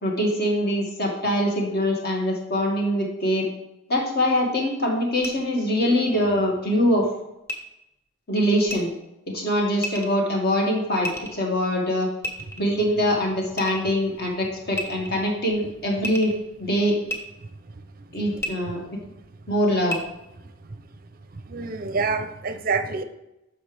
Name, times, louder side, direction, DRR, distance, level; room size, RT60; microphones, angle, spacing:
voice 1, 0.0-3.5 3.9-7.0 8.3-8.9 9.3-12.1 12.6-16.3 16.6-17.0 18.1-18.8 19.5-20.0, equal, 45° left, -1 dB, 2.1 m, -23 dB
sound 1, 5.2-5.3 7.5-7.6 8.7-8.8 9.8-10.1 11.0-11.5 12.2-12.7 13.6-13.9 14.7-15.3 16.0-16.4 17.1-17.2 18.4-18.5 19.9-20.0, equal, 15° left, 0.9 m, -31 dB
voice 2, 21.3-23.0, right 4 dB, 40° right, 9 dB, 0.6 m, -27 dB
10.0 x 6.6 x 3.4 m, 0.90 s
head